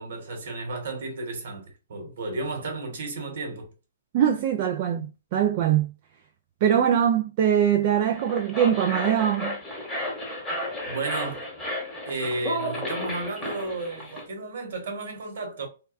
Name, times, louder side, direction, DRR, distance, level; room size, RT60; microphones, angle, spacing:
voice 1, 0.0-3.7 10.9-11.5 12.0-15.7, right 2 dB, 60° right, 1.2 m, -33 dB
voice 2, 4.1-5.9 6.6-9.6, right 9 dB, 45° right, 0.3 m, -22 dB
sound 1, 8.0-14.2, equal, 5° left, 1.1 m, -33 dB
2.3 x 2.2 x 2.4 m
hypercardioid pair, 140°, 0 cm